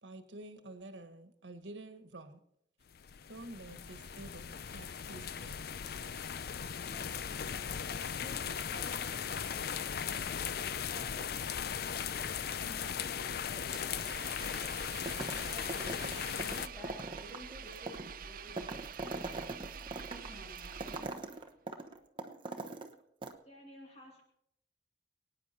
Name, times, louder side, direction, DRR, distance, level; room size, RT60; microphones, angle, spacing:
voice 1, 0.0-2.4 3.3-5.8, right 2 dB, 85° right, 9 dB, 1.3 m, -49 dB
sound 1, 2.9-16.7, left 7 dB, 55° left, 0.5 m, -38 dB
voice 2, 6.9-10.6 10.9-11.9 12.4-15.0 15.5-18.8 19.4-21.2, equal, 5° left, -5 dB, 7.3 m, -54 dB
Engine, 13.7-21.4, right 6 dB, 50° right, 0.7 m, -47 dB
sound 2, 15.1-15.4 15.7-22.9 23.2-23.3, right 2 dB, 30° right, 1.0 m, -42 dB
voice 3, 23.4-24.2, left 1 dB, 35° left, 0 dB, 2.4 m, -53 dB
23.5 x 9.6 x 4.3 m, 0.74 s
head